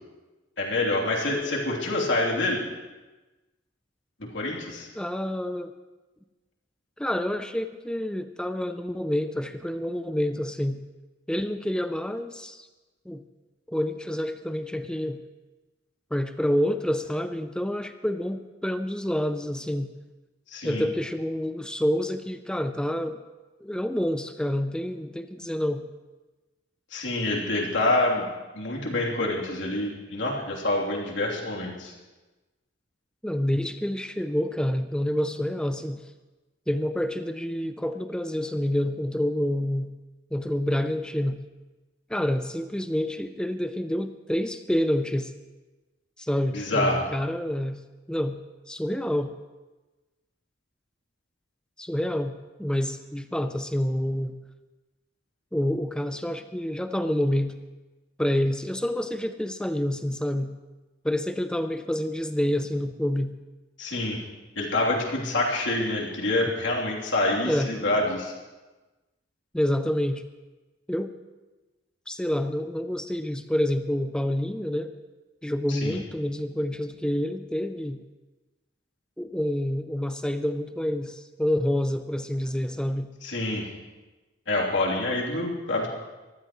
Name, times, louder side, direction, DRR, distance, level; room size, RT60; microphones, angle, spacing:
voice 1, 0.6-2.6 4.3-4.9 20.5-20.8 26.9-28.3 28.5-31.9 46.5-47.0 63.8-64.2 64.6-68.3 75.7-76.0 83.2-83.7 84.5-85.9, left 2 dB, 75° left, -2 dB, 3.1 m, -26 dB
voice 2, 5.0-5.7 7.0-10.8 11.3-12.7 13.1-13.2 13.7-15.2 16.1-19.9 20.6-23.2 23.6-25.9 33.2-36.0 36.7-39.9 40.3-41.4 42.1-45.3 46.2-47.8 48.1-48.4 48.7-49.3 51.8-54.3 55.5-57.5 58.2-60.5 61.0-63.3 67.4-67.7 69.5-70.2 70.9-71.1 72.1-74.9 75.4-78.0 79.2-83.1, left 1 dB, 5° left, 9 dB, 0.4 m, -28 dB
24.0 x 15.0 x 3.1 m, 1.2 s
head